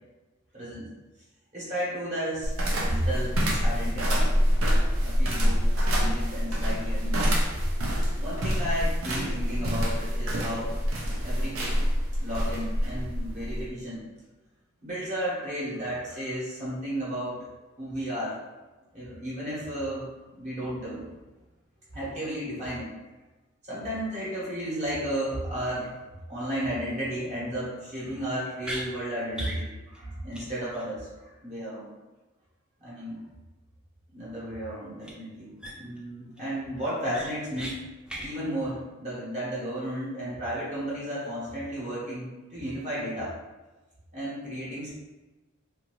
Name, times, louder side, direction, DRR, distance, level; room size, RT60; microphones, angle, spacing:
voice 1, 0.5-0.9 1.5-3.4 3.6-4.3 5.0-5.6 5.9-7.3 8.2-10.7 11.2-11.8 12.2-14.0 14.8-17.4 17.8-18.4 18.9-20.1 20.4-21.0 21.9-22.9 23.6-25.9 26.3-31.9 32.8-33.2 34.1-35.5 35.8-37.8 38.2-43.3 44.1-44.9, equal, 35° right, -9 dB, 1.0 m, -33 dB
sound 1, 2.4-13.7, equal, 70° right, 0.6 m, -26 dB
sound 2, 28.6-28.9 29.3-29.6 29.9-30.0 30.3-30.5 30.7-30.8 35.0-35.1 35.6-36.0 36.4-36.5 36.8-37.7 38.1-38.3, equal, 5° right, 0.4 m, -37 dB
2.6 x 2.5 x 3.0 m, 1.2 s
head